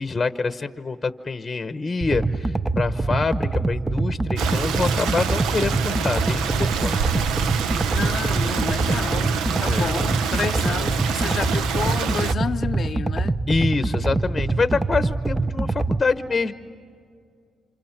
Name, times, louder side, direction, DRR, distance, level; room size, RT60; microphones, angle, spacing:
voice 1, 0.0-7.0 9.6-9.9 13.5-16.5, left 4 dB, 25° left, 0.9 m, -26 dB
sound 1, 2.0-16.0, right 3 dB, 15° right, 0.6 m, -24 dB
Stream, 4.4-12.3, right 7 dB, 85° right, 0.7 m, -27 dB
voice 2, 7.9-13.4, left 6 dB, 45° left, 0.5 m, -30 dB
28.5 x 27.5 x 5.9 m
cardioid pair, 90°, 0 cm